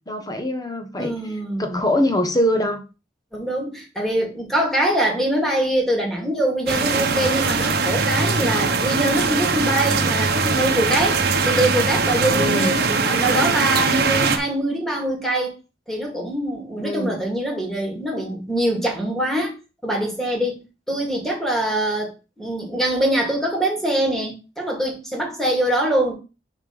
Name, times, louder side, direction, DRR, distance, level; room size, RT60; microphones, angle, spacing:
voice 1, 0.1-1.1 1.6-2.8 12.3-12.7 16.8-17.2, left 1 dB, 20° left, 1.1 m, -23 dB
voice 2, 1.0-1.8 3.3-11.2 11.4-15.5 15.9-19.5 19.8-22.1 22.4-26.1, right 1 dB, ahead, 2.2 m, -23 dB
sound 1, 6.7-14.4, right 4 dB, 60° right, 1.0 m, -21 dB
5.3 x 5.2 x 5.2 m
head